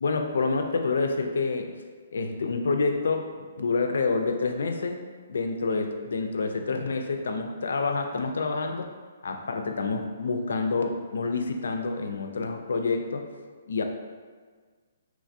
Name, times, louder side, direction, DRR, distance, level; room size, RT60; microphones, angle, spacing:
voice 1, 0.0-1.7 2.1-5.0 5.3-8.9 9.2-13.2 13.7-13.8, left 4 dB, 80° left, 5 dB, 0.3 m, -28 dB
3.0 x 2.3 x 2.6 m, 1.6 s
hypercardioid pair, 150°, 0 cm